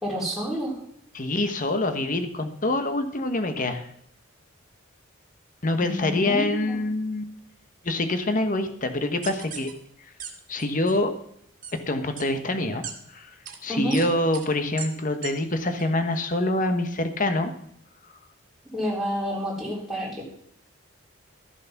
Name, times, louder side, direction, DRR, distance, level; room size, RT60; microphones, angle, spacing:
voice 1, 0.0-0.7 5.8-6.8 13.7-14.0 18.7-20.4, equal, ahead, -6 dB, 3.3 m, -29 dB
voice 2, 1.1-3.8 5.6-7.3 7.8-9.7 10.5-11.1 11.9-12.8 13.1-13.3 13.6-17.5, left 2 dB, 40° left, 8 dB, 1.2 m, -25 dB
sound 1, 9.2-9.7 10.2-10.3 10.6-10.9 11.6-11.7 12.2-12.3 12.8-12.9 13.4-13.6 13.9-14.0 14.3-14.5 14.8-14.9 15.2-15.3 15.8-15.9, right 8 dB, 40° right, 2.0 m, -36 dB
13.5 x 7.3 x 5.9 m, 0.70 s
head